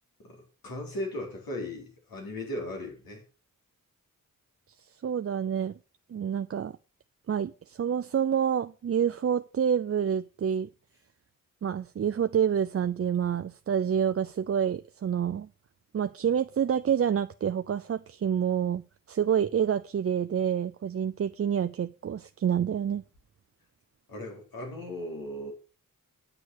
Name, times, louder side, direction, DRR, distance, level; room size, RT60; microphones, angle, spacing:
voice 1, 0.2-3.2 24.1-25.5, left 1 dB, 85° left, 4.2 m, -37 dB
voice 2, 5.0-5.8 6.1-6.8 7.3-10.7 11.6-15.5 15.9-18.8 19.1-23.0, right 8 dB, 45° right, 0.5 m, -28 dB
9.6 x 6.9 x 6.3 m
cardioid pair, 80°, 34 cm